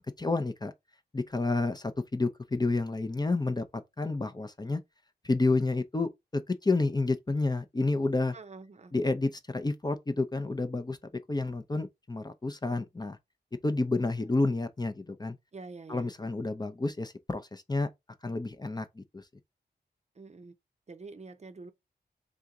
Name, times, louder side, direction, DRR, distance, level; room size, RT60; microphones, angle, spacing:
voice 1, 0.2-0.7 1.1-3.7 4.0-4.8 5.2-8.3 8.9-11.0 11.3-13.2 13.6-15.4 15.9-17.9 18.2-19.2, left 3 dB, 25° left, 0.6 m, -30 dB
voice 2, 8.3-8.9 14.1-14.2 15.5-16.1 20.2-20.5 20.9-21.7, right 3 dB, 40° right, 0.6 m, -46 dB
3.7 x 2.8 x 3.5 m
cardioid pair, 60°, 18 cm